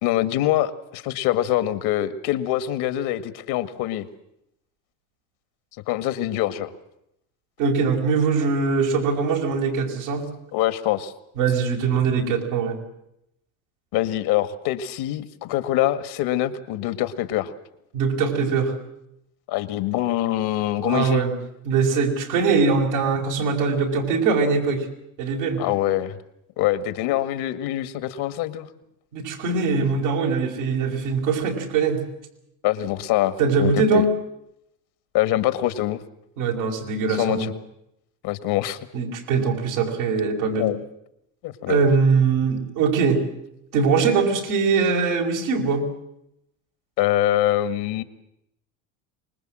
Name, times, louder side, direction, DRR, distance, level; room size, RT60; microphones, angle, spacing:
voice 1, 0.0-4.1 5.9-6.7 10.5-11.1 13.9-17.5 19.5-21.2 25.6-26.2 26.6-28.7 32.6-34.1 35.1-36.0 37.1-37.5 38.2-38.8 40.6-40.8 41.4-41.8 47.0-48.0, left 13 dB, 70° left, 13 dB, 2.0 m, -24 dB
voice 2, 7.6-10.3 11.4-12.8 17.9-18.7 20.8-21.3 21.7-24.9 25.2-25.6 29.1-32.0 33.4-34.1 36.4-37.5 38.9-40.7 41.7-43.2 43.7-45.9, right 5 dB, 85° right, -1 dB, 5.2 m, -22 dB
25.0 x 20.5 x 7.7 m, 0.80 s
supercardioid pair, 80°, 41 cm